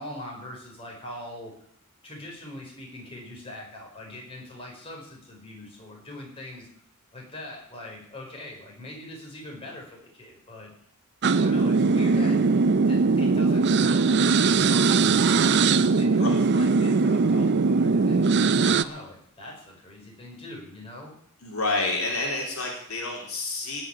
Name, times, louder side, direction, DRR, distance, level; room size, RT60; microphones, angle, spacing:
voice 1, 0.0-1.5 2.0-6.7 7.1-10.7 11.3-15.5 15.9-21.1, left 1 dB, 25° left, -2 dB, 5.2 m, -42 dB
sound 1, 11.2-18.8, right 4 dB, 50° right, 0.5 m, -20 dB
voice 2, 21.4-23.8, left 2 dB, 70° left, 0 dB, 3.4 m, -29 dB
17.5 x 6.3 x 9.9 m, 0.68 s
head